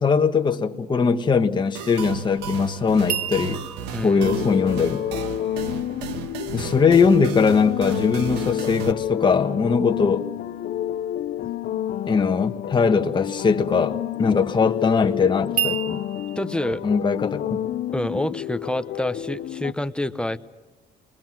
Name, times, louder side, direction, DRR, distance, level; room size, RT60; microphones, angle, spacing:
voice 1, 0.0-3.6 4.0-5.0 6.5-10.3 12.1-16.0 16.8-17.6, left 5 dB, 25° left, 5 dB, 1.6 m, -20 dB
sound 1, 1.7-8.9, right 6 dB, 90° right, 1.5 m, -34 dB
sound 2, 3.1-6.2 15.6-16.4, right 10 dB, 60° right, 1.4 m, -31 dB
voice 2, 3.9-4.2 16.4-16.8 17.9-20.4, left 1 dB, 5° left, 12 dB, 0.9 m, -27 dB
sound 3, 4.2-19.7, left 11 dB, 60° left, 0.7 m, -30 dB
28.0 x 21.5 x 6.1 m, 1.2 s
cardioid pair, 110°, 17 cm